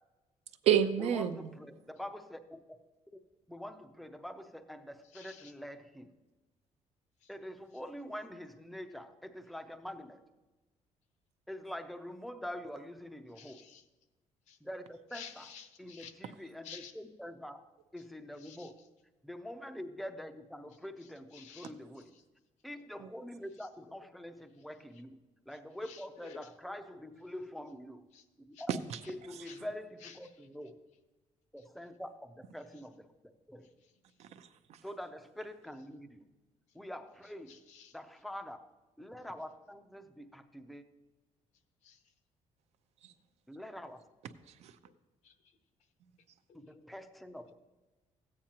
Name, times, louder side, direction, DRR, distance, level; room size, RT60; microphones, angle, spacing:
voice 1, 0.7-1.5 23.0-23.1 28.7-29.0 29.3-29.5 34.2-34.8 43.0-43.1 44.5-44.8, right 9 dB, 60° right, 0.6 m, -31 dB
voice 2, 1.6-2.8 3.1-3.2 3.5-6.1 7.3-10.2 11.5-13.7 14.6-15.5 15.8-17.6 17.9-18.7 19.2-22.1 22.6-25.2 25.5-28.1 28.4-28.8 29.1-30.8 31.5-32.1 32.5-33.1 33.5-33.7 34.8-36.3 36.7-37.6 37.9-38.7 39.0-40.8 43.5-44.0 46.5-47.5, left 1 dB, ahead, 0.5 m, -45 dB
voice 3, 5.0-5.5 7.2-7.3 13.3-13.9 14.5-14.6 15.1-16.1 16.6-16.9 18.4-18.9 20.7-22.2 23.5-24.0 24.9-25.0 25.5-26.5 28.1-28.3 28.5-28.7 29.0-29.1 29.4-29.6 30.0-30.5 31.6-31.7 33.6-34.2 36.7-36.8 37.2-38.0 41.8-42.1 44.8-45.6 46.5-46.6, left 7 dB, 75° left, 0.9 m, -54 dB
14.5 x 8.8 x 2.9 m
cardioid pair, 175°, 12 cm